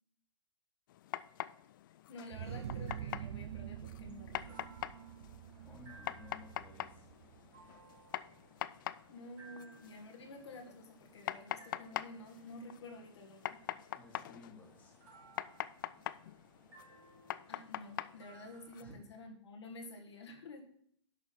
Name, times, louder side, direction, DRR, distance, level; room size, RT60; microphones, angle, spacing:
sound 1, 0.9-18.8, left 12 dB, 45° left, 0.4 m, -45 dB
voice 1, 2.1-4.9 9.1-13.7 17.5-20.6, left 2 dB, 65° left, 2 dB, 1.9 m, -51 dB
sound 2, 2.3-7.8, right 10 dB, 55° right, 0.5 m, -46 dB
sound 3, 2.8-18.8, right 3 dB, 40° right, 4.0 m, -62 dB
voice 2, 5.6-7.1 14.0-15.0 18.8-19.0, left 2 dB, 10° left, -2 dB, 2.1 m, -55 dB
11.0 x 4.0 x 5.8 m, 0.65 s
figure-of-eight pair, 120°, 15 cm